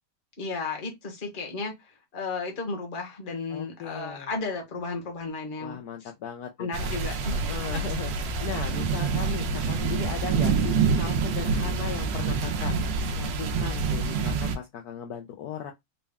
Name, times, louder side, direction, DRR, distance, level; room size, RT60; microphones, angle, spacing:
voice 1, 0.4-6.1 6.6-7.5, left 3 dB, 35° left, 1.1 m, -34 dB
voice 2, 3.5-4.3 5.6-6.9 7.5-12.8 13.1-15.7, left 9 dB, 70° left, 1.0 m, -37 dB
sound 1, 6.7-14.6, right 5 dB, 85° right, 1.4 m, -27 dB
4.0 x 2.2 x 3.5 m
omnidirectional pair, 1.9 m